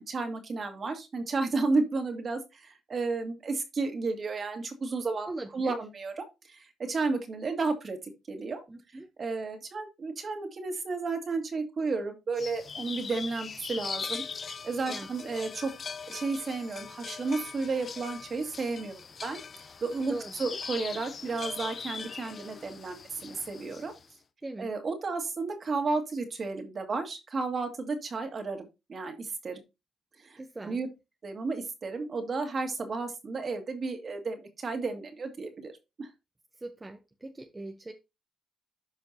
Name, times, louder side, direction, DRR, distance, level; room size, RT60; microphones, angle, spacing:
voice 1, 0.0-5.3 5.5-8.0 8.3-8.6 9.2-15.7 16.1-23.9 24.6-29.6 30.2-30.9 31.2-35.7 36.0-36.1, right 3 dB, 40° right, 6 dB, 2.2 m, -32 dB
voice 2, 5.2-5.8 8.7-9.1 14.8-15.1 20.1-20.3 24.4-24.7 30.4-30.8 36.6-37.9, right 2 dB, 20° right, 5 dB, 0.9 m, -40 dB
sound 1, 12.4-24.1, left 5 dB, 45° left, 0.8 m, -41 dB
12.5 x 5.1 x 2.9 m, 0.25 s
cardioid pair, 90°, 0 cm